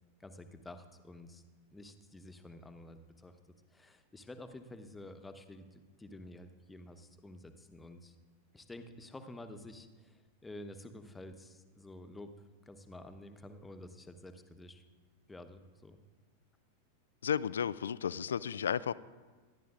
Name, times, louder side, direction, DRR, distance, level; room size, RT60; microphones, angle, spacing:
voice 1, 0.2-1.4 1.7-3.4 3.7-8.1 8.5-14.8 15.3-16.0, left 1 dB, 10° left, 8 dB, 1.0 m, -50 dB
voice 2, 17.2-18.9, left 8 dB, 65° left, 18 dB, 0.3 m, -33 dB
24.0 x 11.0 x 2.5 m, 1.4 s
figure-of-eight pair, 90°, 0 cm